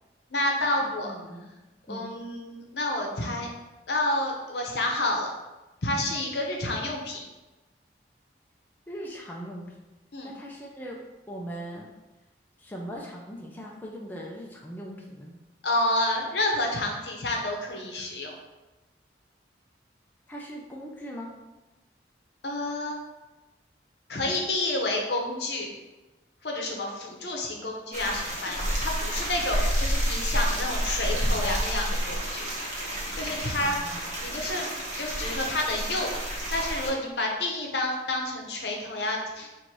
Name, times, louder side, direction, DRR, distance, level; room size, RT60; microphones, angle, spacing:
voice 1, 0.3-1.1 1.9-3.5 3.9-5.3 5.8-7.2 10.1-10.3 15.6-18.4 22.4-23.0 24.1-25.7 26.4-32.5 33.1-33.8 34.2-34.7 35.0-36.1 36.5-39.6, left 1 dB, 65° left, 1 dB, 0.8 m, -29 dB
voice 2, 0.8-1.5 1.9-2.1 8.9-9.8 10.2-11.0 11.3-11.9 12.6-15.4 20.3-21.3 33.6-34.0, equal, 10° left, -2 dB, 0.4 m, -40 dB
sound 1, 27.9-36.9, equal, 40° right, 1.1 m, -30 dB
4.3 x 2.6 x 4.6 m, 1.1 s
head